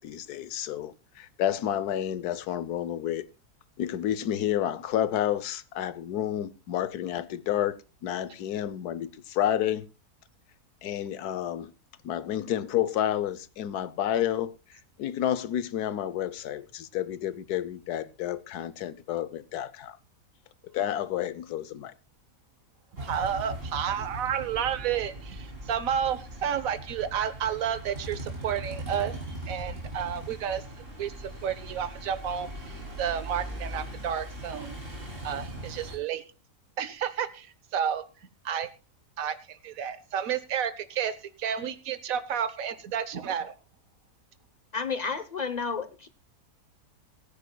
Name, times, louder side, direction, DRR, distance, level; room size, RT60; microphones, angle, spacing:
voice 1, 0.0-3.3 3.8-7.8 8.0-9.9 10.8-11.7 12.0-14.5 15.0-20.0 20.7-21.9, left 11 dB, 75° left, 1.3 m, -30 dB
sound 1, 23.0-36.0, right 1 dB, 35° right, 3.6 m, -40 dB
voice 2, 23.0-29.1 29.5-30.6 31.0-31.1 31.4-34.8 35.2-36.2 36.8-38.0 38.4-38.7 39.2-43.5, right 8 dB, 60° right, 1.4 m, -31 dB
voice 3, 44.7-46.1, left 5 dB, 35° left, 0.8 m, -31 dB
23.0 x 9.9 x 2.3 m
omnidirectional pair, 1.7 m